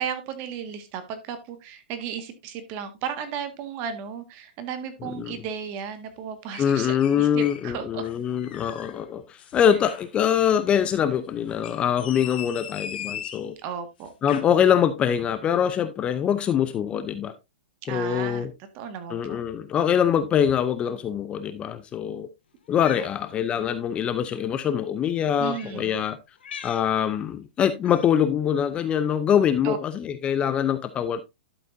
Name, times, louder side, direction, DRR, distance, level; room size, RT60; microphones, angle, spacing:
voice 1, 0.0-8.0 13.6-14.1 17.9-18.5 18.7-19.4 25.4-26.0 29.6-29.8, right 8 dB, 35° right, 1.7 m, -34 dB
voice 2, 5.0-5.4 6.6-13.5 14.2-17.3 17.9-18.5 19.1-22.3 22.7-26.2 26.6-31.2, left 9 dB, 20° left, 0.6 m, -24 dB
sound 1, 6.5-7.7 8.0-9.0 9.4-10.1 11.5-13.5 14.0-14.4, left 9 dB, 65° left, 1.8 m, -39 dB
Cat, 22.7-23.1 24.2-24.4 25.5-25.8 26.4-26.9 27.8-28.2, left 8 dB, 80° left, 1.7 m, -41 dB
12.0 x 6.9 x 2.6 m
hypercardioid pair, 150°, 6 cm